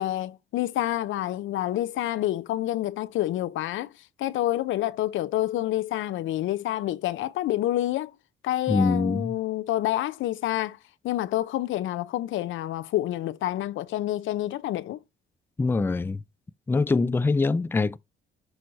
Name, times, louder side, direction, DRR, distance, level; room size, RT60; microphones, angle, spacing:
voice 1, 0.0-3.9 4.2-8.1 8.4-10.8 11.0-15.0, left 14 dB, 75° left, 0.6 m, -28 dB
voice 2, 8.7-9.4 15.6-16.2 16.7-18.0, left 3 dB, 10° left, 0.3 m, -24 dB
6.2 x 3.0 x 5.2 m
cardioid pair, 90°, 20 cm